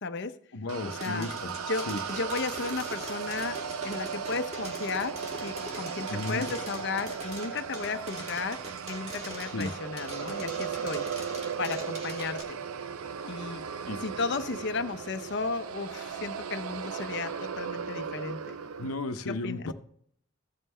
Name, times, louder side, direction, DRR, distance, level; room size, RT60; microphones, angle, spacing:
voice 1, 0.0-0.3 0.8-1.3 1.7-3.6 3.8-11.1 11.6-12.6 13.3-13.6 14.0-18.6 19.3-19.6, left 4 dB, 55° left, 0.7 m, -34 dB
voice 2, 0.5-1.5 1.9-2.0 6.1-6.4 9.5-9.7 13.9-14.0 18.8-19.7, left 2 dB, 90° left, 0.8 m, -34 dB
sound 1, 0.7-18.9, right 6 dB, 80° right, 0.5 m, -37 dB
sound 2, 0.9-12.4, right 1 dB, 30° right, 1.6 m, -43 dB
15.0 x 5.5 x 3.3 m
head